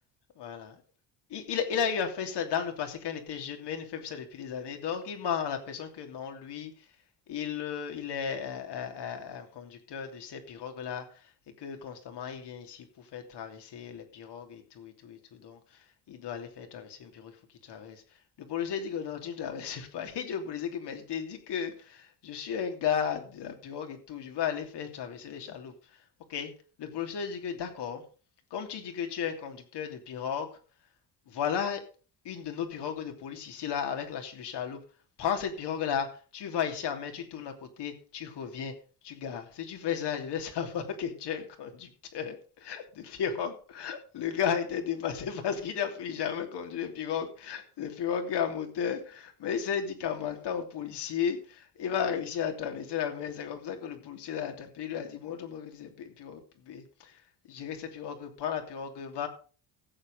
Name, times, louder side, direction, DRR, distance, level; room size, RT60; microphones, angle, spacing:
voice 1, 0.4-0.8 1.3-6.9 7.3-11.2 11.6-17.4 17.6-18.0 18.4-26.0 26.3-26.5 26.8-28.0 28.5-30.5 31.3-31.8 32.2-34.8 35.2-38.7 39.0-57.2 57.5-59.3, left 8 dB, 65° left, 5 dB, 3.0 m, -34 dB
15.5 x 7.3 x 5.2 m, 0.38 s
cardioid pair, 95°, 43 cm